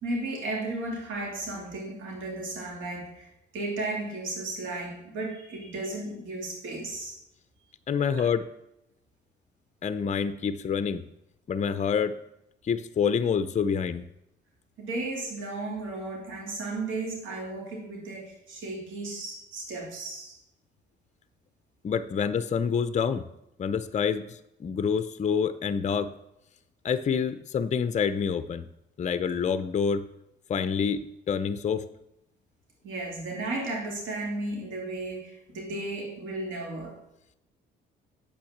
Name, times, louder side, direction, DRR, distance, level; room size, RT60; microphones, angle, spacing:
voice 1, 0.0-7.1 14.8-20.4 32.8-37.0, right 2 dB, 80° right, -1 dB, 2.4 m, -34 dB
voice 2, 7.9-8.4 9.8-11.0 11.5-12.1 12.6-14.0 21.8-23.3 23.6-26.1 26.8-28.7 29.0-30.1 30.5-31.9, left 6 dB, 35° left, 12 dB, 0.6 m, -27 dB
8.6 x 6.0 x 7.3 m, 0.84 s
cardioid pair, 90°, 20 cm